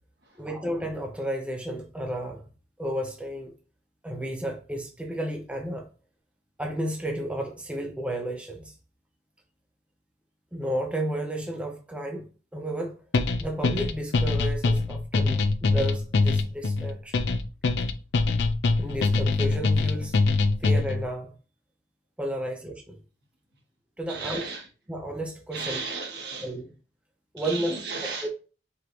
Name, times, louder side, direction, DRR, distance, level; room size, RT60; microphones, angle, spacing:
voice 1, 0.4-2.5 2.8-3.5 4.0-5.9 6.6-8.7 10.5-12.2 12.5-13.0 13.4-17.2 18.8-20.1 20.6-21.3 22.2-23.0 24.0-24.4 24.9-25.8 26.4-26.6 27.3-27.8 28.2-28.3, right 1 dB, 5° right, 0.6 m, -32 dB
sound 1, 13.1-21.0, left 3 dB, 80° left, 0.5 m, -23 dB
voice 2, 24.1-24.7 25.5-26.5 27.4-28.3, right 4 dB, 65° right, 1.4 m, -35 dB
4.8 x 2.5 x 3.1 m
head